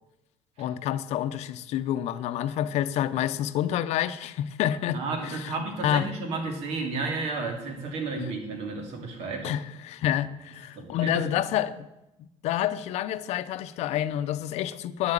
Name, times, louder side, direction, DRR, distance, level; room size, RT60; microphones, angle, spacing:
voice 1, 0.6-5.5 5.8-6.1 8.2-8.3 9.4-11.9 12.2-15.1, left 11 dB, 70° left, 0.6 m, -28 dB
voice 2, 4.9-9.5 10.8-11.2, right 3 dB, 70° right, 2.5 m, -32 dB
9.9 x 7.8 x 7.4 m
cardioid pair, 160°, 11 cm